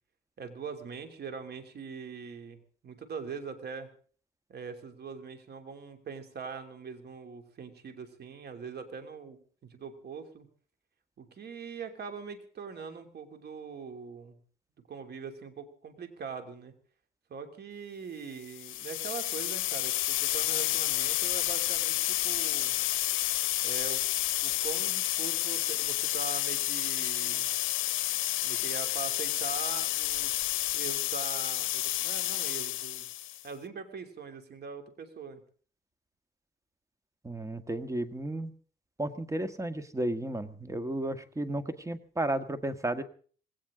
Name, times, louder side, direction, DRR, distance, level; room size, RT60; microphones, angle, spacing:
voice 1, 0.4-3.9 4.5-10.5 11.2-14.4 14.9-16.7 17.3-22.7 23.6-24.0 24.4-27.5 28.4-30.4 30.7-33.1 33.4-35.4, right 5 dB, 55° right, 7 dB, 3.0 m, -42 dB
sound 1, 18.5-33.4, left 15 dB, 80° left, 0.6 m, -30 dB
voice 2, 37.2-38.5 39.0-43.0, right 1 dB, 15° right, 10 dB, 1.6 m, -33 dB
19.5 x 17.5 x 3.8 m, 0.43 s
cardioid pair, 90°, 20 cm